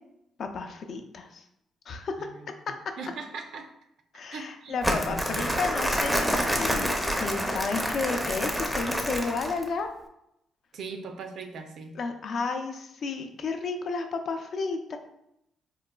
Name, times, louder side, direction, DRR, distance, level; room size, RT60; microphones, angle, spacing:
voice 1, 0.4-1.4 1.9-2.1 4.1-9.9 12.0-15.0, left 4 dB, 60° left, 6 dB, 0.4 m, -32 dB
voice 2, 2.2-3.7 4.3-5.0 5.3-5.6 10.7-12.0, right 4 dB, 70° right, 5 dB, 0.4 m, -40 dB
Crumpling crinkling, 4.8-9.7, equal, 5° right, 0.4 m, -28 dB
3.8 x 2.4 x 2.2 m, 0.81 s
cardioid pair, 90°, 0 cm